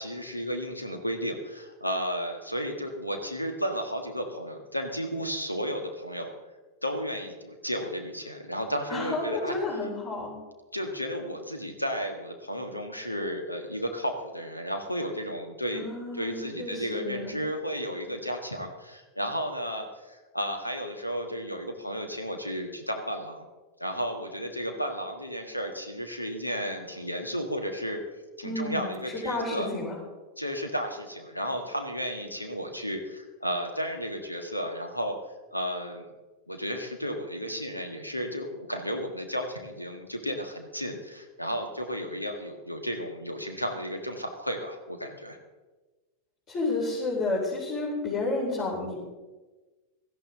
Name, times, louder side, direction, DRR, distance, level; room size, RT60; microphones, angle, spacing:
voice 1, 0.0-6.3 6.8-9.6 10.7-15.8 16.1-23.4 23.8-28.0 28.4-29.7 30.4-35.2 35.5-36.1 36.5-45.4, equal, 85° left, 5 dB, 1.5 m, -33 dB
voice 2, 8.9-10.4 15.7-17.4 28.4-30.0 46.5-49.0, left 2 dB, 35° left, -6 dB, 4.6 m, -31 dB
17.5 x 13.5 x 3.9 m, 1.2 s
figure-of-eight pair, 90°, 0 cm